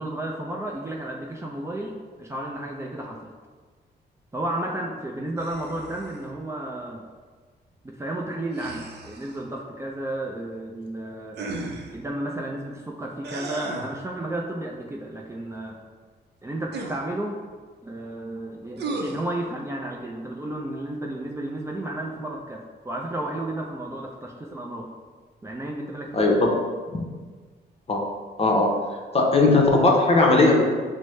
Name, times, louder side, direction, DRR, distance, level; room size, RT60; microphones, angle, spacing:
voice 1, 0.0-3.3 4.3-7.0 7.8-11.4 11.9-15.8 16.4-17.4 17.8-24.9 25.4-26.4, right 1 dB, 15° right, -2 dB, 0.4 m, -32 dB
sound 1, 5.4-6.3 8.5-9.5 11.3-12.0 13.2-14.0 16.7-17.0 18.8-19.3, right 3 dB, 70° right, 0.6 m, -35 dB
voice 2, 26.1-26.5 27.9-28.0 28.4-28.7 29.1-30.7, left 2 dB, 35° left, -1 dB, 0.7 m, -18 dB
6.1 x 2.1 x 3.1 m, 1.5 s
cardioid pair, 100°, 18 cm